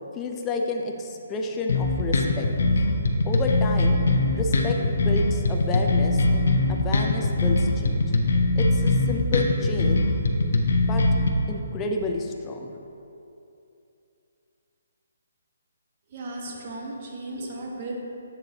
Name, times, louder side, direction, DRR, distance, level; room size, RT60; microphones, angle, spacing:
voice 1, 0.1-2.5 3.2-4.0 4.3-8.1 8.6-10.0 10.9-11.0 11.5-12.7, left 3 dB, 15° left, 1 dB, 0.5 m, -30 dB
sound 1, 1.7-11.3, left 2 dB, 70° left, 0.7 m, -22 dB
voice 2, 16.1-17.9, right 2 dB, 40° right, -1 dB, 1.2 m, -35 dB
8.2 x 6.5 x 2.8 m, 2.7 s
hypercardioid pair, 150°, 0 cm